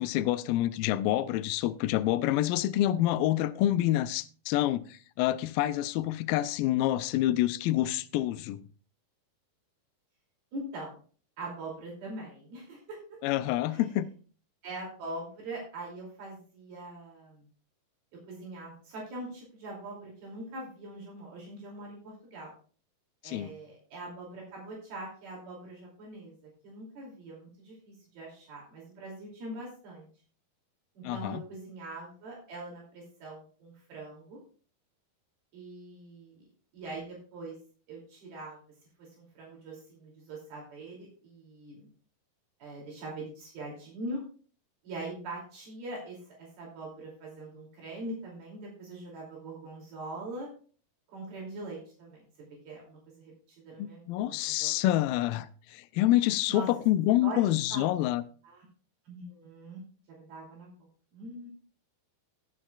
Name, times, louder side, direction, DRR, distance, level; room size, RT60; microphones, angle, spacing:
voice 1, 0.0-8.6 13.2-14.1 23.2-23.5 31.0-31.4 53.8-58.2, left 14 dB, 80° left, 2.1 m, -27 dB
voice 2, 10.5-11.0 11.4-13.0 13.7-13.9 14.6-17.5 18.3-22.5 23.2-26.4 26.6-30.1 31.0-34.4 35.5-36.5 36.7-37.6 37.9-38.6 39.0-41.9 42.6-44.2 44.8-50.5 51.1-54.7 56.5-56.7 57.2-57.4 57.7-58.0 58.4-58.7 59.1-59.8 60.1-60.8 61.1-61.5, right 2 dB, 75° right, 4.6 m, -42 dB
20.0 x 7.4 x 2.3 m
omnidirectional pair, 4.5 m